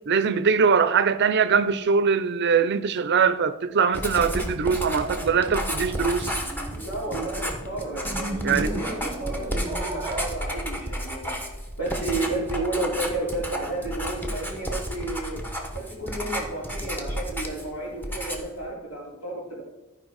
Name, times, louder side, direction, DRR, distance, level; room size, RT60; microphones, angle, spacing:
voice 1, 0.1-6.4 8.4-8.7, right 6 dB, 50° right, 0.5 m, -22 dB
Writing, 3.9-17.7 18.0-18.6, equal, 10° left, 1.0 m, -32 dB
sound 1, 5.0-10.3, right 2 dB, 15° right, 0.9 m, -36 dB
voice 2, 6.7-11.4 11.8-15.4 15.7-19.6, right 2 dB, 80° left, 3.7 m, -32 dB
13.0 x 5.0 x 4.7 m
head